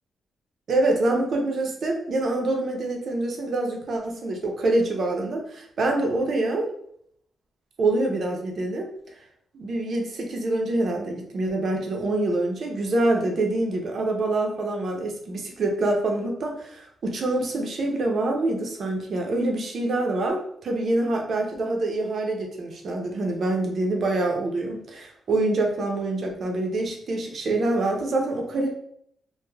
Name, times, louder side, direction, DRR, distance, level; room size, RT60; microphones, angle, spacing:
voice 1, 0.7-6.7 7.8-8.9 9.5-28.7, right 2 dB, 60° right, 2 dB, 0.6 m, -25 dB
3.2 x 2.1 x 2.2 m, 0.70 s
cardioid pair, 100°, 0 cm